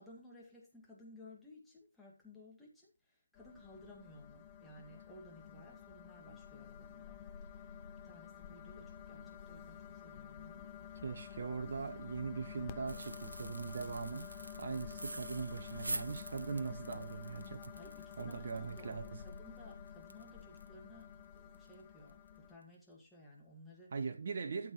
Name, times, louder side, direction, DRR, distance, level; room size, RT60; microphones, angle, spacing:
voice 1, 0.0-7.8 8.0-10.7 17.7-23.9, left 1 dB, ahead, 2.0 m, -57 dB
sound 1, 3.4-22.6, left 8 dB, 15° left, 0.6 m, -50 dB
voice 2, 11.0-14.3 14.6-17.7 18.2-19.2 23.9-24.7, right 5 dB, 35° right, 0.8 m, -41 dB
sound 2, 12.9-20.7 21.0-21.1 21.5-21.7 22.1-22.3, right 2 dB, 70° right, 1.0 m, -47 dB
13.0 x 7.2 x 3.2 m
figure-of-eight pair, 155°, 0 cm